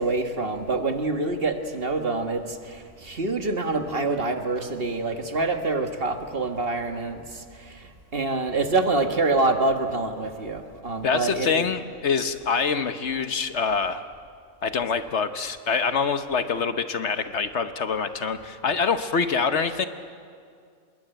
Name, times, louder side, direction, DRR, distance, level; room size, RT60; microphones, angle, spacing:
voice 1, 0.0-11.6, right 3 dB, 45° right, 6 dB, 1.7 m, -26 dB
voice 2, 11.0-14.0 14.6-19.9, left 5 dB, 60° left, 10 dB, 1.2 m, -25 dB
25.5 x 22.0 x 9.0 m, 2.3 s
omnidirectional pair, 1.4 m